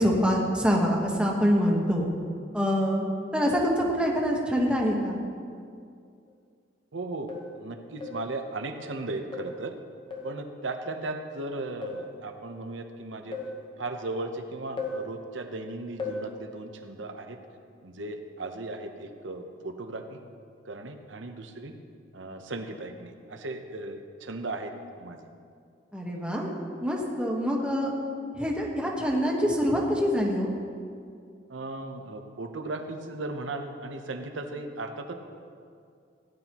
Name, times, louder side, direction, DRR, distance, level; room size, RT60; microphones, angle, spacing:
voice 1, 0.0-2.1 2.5-5.2 25.9-26.5 26.8-27.9 28.4-30.5, equal, 5° right, -1 dB, 1.3 m, -25 dB
sound 1, 6.3-6.4 7.3-7.6 8.0-8.3 9.3-9.6 10.1-10.4 11.8-12.1 13.3-13.6 14.8-15.1 16.0-16.3, left 3 dB, 25° left, 1.0 m, -36 dB
voice 2, 6.9-7.3 7.6-9.7 10.2-13.4 13.8-17.4 17.8-20.2 20.7-21.7 22.1-25.2 31.5-35.1, right 2 dB, 80° right, 6 dB, 0.9 m, -36 dB
17.0 x 10.0 x 3.0 m, 2.3 s
head